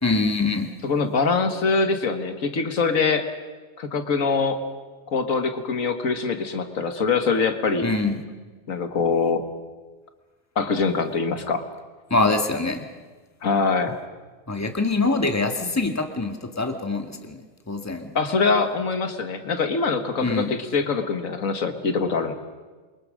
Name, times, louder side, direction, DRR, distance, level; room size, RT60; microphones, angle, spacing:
voice 1, 0.0-0.7 7.8-8.2 12.1-12.8 14.5-17.4 17.7-18.1 20.2-20.5, left 3 dB, 10° left, 5 dB, 1.6 m, -24 dB
voice 2, 0.8-3.3 3.8-4.6 5.1-7.9 8.7-9.4 10.6-11.6 13.4-14.0 18.2-22.3, left 4 dB, 70° left, 8 dB, 1.8 m, -23 dB
28.0 x 23.0 x 6.4 m, 1.4 s
omnidirectional pair, 1.4 m